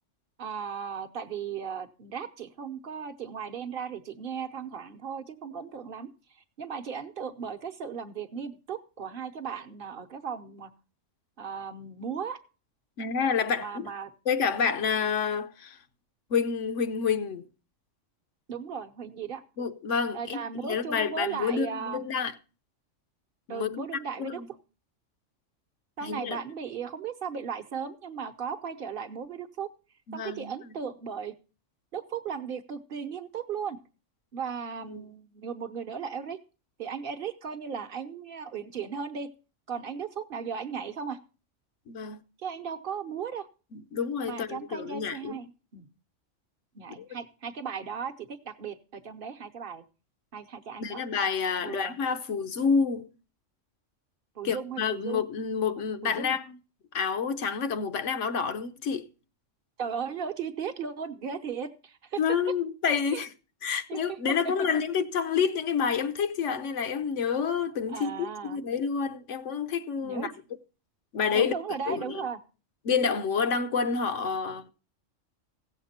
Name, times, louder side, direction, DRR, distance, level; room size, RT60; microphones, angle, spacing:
voice 1, 0.4-10.7 11.4-12.4 13.6-14.1 18.5-19.4 20.1-22.0 23.5-24.4 26.0-29.7 30.1-31.3 31.9-33.8 34.3-36.4 36.8-39.3 39.7-41.2 42.4-43.5 44.2-45.9 46.7-49.8 50.3-51.0 51.6-52.0 54.4-55.2 56.0-56.4 59.8-62.2 63.1-63.2 63.9-64.2 67.9-68.6 70.0-70.3 71.3-72.4, right 6 dB, 50° right, 1.0 m, -36 dB
voice 2, 13.0-13.9 14.3-15.8 16.3-17.4 19.6-22.3 23.5-23.9 24.2-24.5 26.0-26.4 30.1-30.6 34.9-35.0 41.9-42.2 43.7-45.4 47.0-47.1 50.8-53.1 54.4-56.6 56.9-59.1 62.2-63.3 63.6-70.3 71.1-71.5 71.9-72.3 72.8-74.7, left 6 dB, 75° left, 1.1 m, -28 dB
16.0 x 7.4 x 4.2 m
omnidirectional pair, 1.3 m